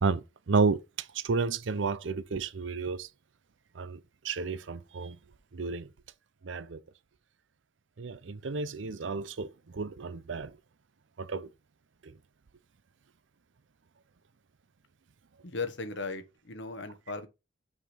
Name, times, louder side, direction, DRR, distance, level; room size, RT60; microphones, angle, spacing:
voice 1, 0.0-0.8 1.1-3.1 3.8-4.0 4.2-5.2 5.5-5.9 6.4-6.8 8.0-10.5 11.2-11.5, right 4 dB, 70° right, 0.6 m, -31 dB
voice 2, 15.4-17.3, left 3 dB, 65° left, 1.2 m, -37 dB
5.7 x 5.0 x 5.7 m
head